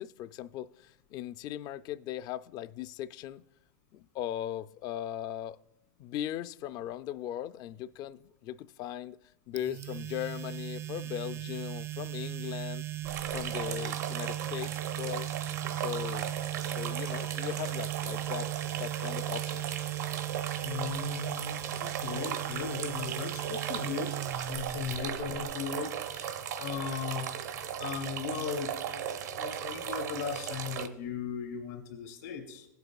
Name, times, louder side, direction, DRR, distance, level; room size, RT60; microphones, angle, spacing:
voice 1, 0.0-3.4 3.9-5.6 6.0-9.2 9.5-12.8 13.3-15.4 15.7-16.4 16.8-19.8, left 12 dB, 50° left, 0.4 m, -38 dB
sound 1, 9.6-25.5, right 14 dB, 30° right, 0.3 m, -38 dB
sound 2, 13.0-30.9, right 9 dB, 80° right, 0.9 m, -37 dB
voice 2, 20.6-27.3 27.8-32.7, left 7 dB, 75° left, 2.1 m, -37 dB
17.5 x 8.0 x 2.3 m
hypercardioid pair, 100°, 9 cm